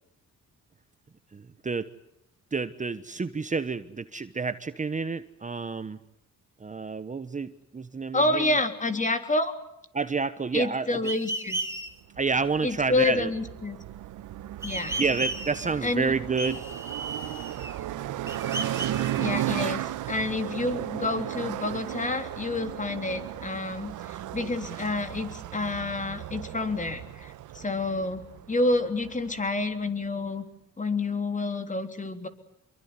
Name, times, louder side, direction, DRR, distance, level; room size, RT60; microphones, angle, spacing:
voice 1, 1.3-1.9 2.5-6.0 6.6-8.5 9.9-11.1 12.2-13.3 15.0-16.6 19.6-19.7, right 4 dB, 25° right, 12 dB, 1.1 m, -29 dB
voice 2, 8.1-9.5 10.5-11.6 12.6-13.8 14.6-15.0 15.8-16.1 19.2-28.2 28.5-30.4 30.8-32.3, left 2 dB, 25° left, 8 dB, 3.4 m, -28 dB
sound 1, 11.0-11.9 14.6-15.8 16.4-17.8 18.3-19.8, right 2 dB, 10° right, 3.8 m, -35 dB
sound 2, 12.1-29.6, right 13 dB, 80° right, 1.3 m, -35 dB
26.0 x 23.0 x 9.7 m, 0.79 s
cardioid pair, 90°, 30 cm